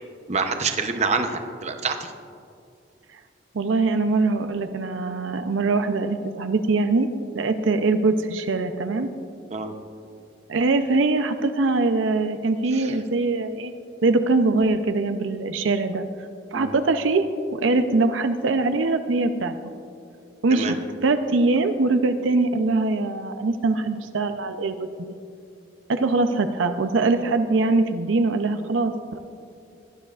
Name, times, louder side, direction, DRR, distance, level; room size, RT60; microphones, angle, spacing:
voice 1, 0.3-2.1 9.5-9.7 12.7-13.0 16.5-16.7 20.5-20.7, right 4 dB, 35° right, 6 dB, 0.7 m, -26 dB
voice 2, 3.5-7.1 7.3-9.1 10.5-13.7 14.0-16.1 16.5-17.2 17.6-19.5 20.4-20.8 21.0-25.1 25.9-29.2, right 3 dB, 80° right, 8 dB, 0.6 m, -22 dB
18.5 x 12.0 x 2.4 m, 2.4 s
head